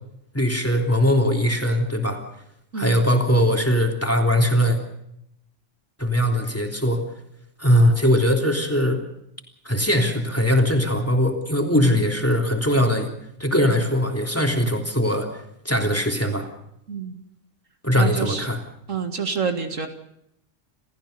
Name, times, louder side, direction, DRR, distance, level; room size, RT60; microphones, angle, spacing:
voice 1, 0.3-2.2 2.7-4.8 6.0-7.0 7.6-9.0 9.6-13.1 13.4-16.5 17.8-18.6, equal, 10° left, 3 dB, 3.3 m, -20 dB
voice 2, 17.9-18.5 18.9-19.9, right 6 dB, 70° right, 6 dB, 2.3 m, -27 dB
28.5 x 15.0 x 6.8 m, 0.77 s
omnidirectional pair, 1.4 m